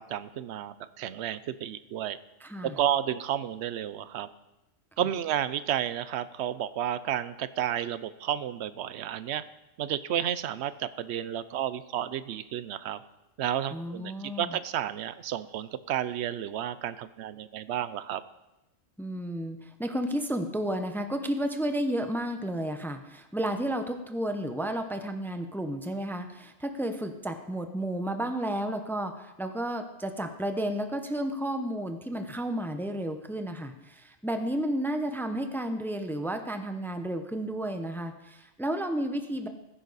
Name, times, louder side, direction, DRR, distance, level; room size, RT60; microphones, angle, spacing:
voice 1, 0.0-2.2 2.6-4.3 5.0-9.4 9.8-13.0 13.4-18.2, right 10 dB, 65° right, 15 dB, 0.8 m, -31 dB
voice 2, 2.4-2.8 13.7-14.6 19.0-39.5, right 1 dB, ahead, 7 dB, 0.6 m, -32 dB
15.0 x 9.9 x 4.1 m, 0.98 s
omnidirectional pair, 1.3 m